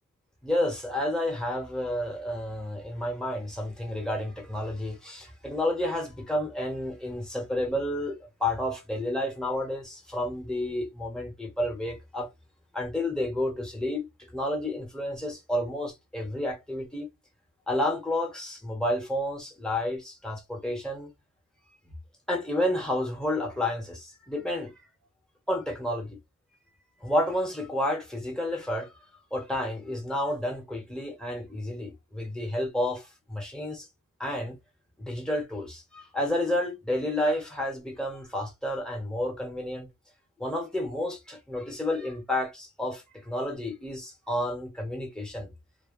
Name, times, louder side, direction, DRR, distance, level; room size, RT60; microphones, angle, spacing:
voice 1, 0.4-12.3 12.7-17.1 17.7-21.1 22.3-24.7 25.5-26.2 27.0-29.0 29.3-33.9 34.2-34.6 35.0-39.9 40.4-45.5, left 1 dB, ahead, 1.1 m, -30 dB
2.2 x 2.2 x 3.6 m
wide cardioid pair, 115°, 32 cm